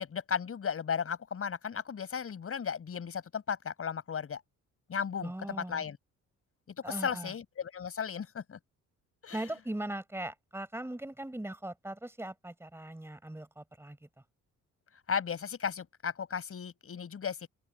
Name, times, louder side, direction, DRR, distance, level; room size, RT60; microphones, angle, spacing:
voice 1, 0.0-4.4 4.9-6.0 6.8-8.6 9.2-9.4 15.1-17.5, left 7 dB, 50° left, 6.1 m, -35 dB
voice 2, 5.2-5.8 6.8-7.3 9.3-14.0, right 1 dB, 10° right, 4.8 m, -39 dB
open air
cardioid pair, 90°, 30 cm